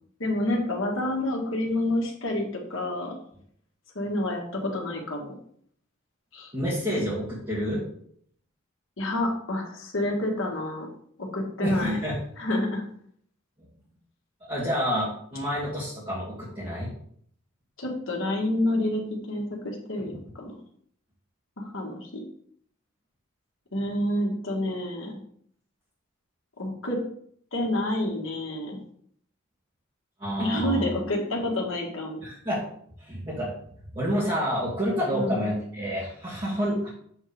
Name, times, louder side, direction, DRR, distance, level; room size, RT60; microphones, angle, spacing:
voice 1, 0.2-3.1 3.9-5.3 6.3-6.5 9.0-10.9 11.2-12.0 12.4-12.8 17.8-19.0 19.3-20.5 21.6-22.2 23.7-25.2 26.6-27.0 27.5-28.8 30.4-32.2 35.1-35.4, left 1 dB, 70° left, 1 dB, 1.6 m, -28 dB
voice 2, 6.5-7.8 11.6-12.2 14.4-16.9 30.2-30.9 32.2-32.7 33.0-33.6 33.9-36.9, equal, 25° right, -10 dB, 2.0 m, -28 dB
7.3 x 3.7 x 5.0 m, 0.63 s
head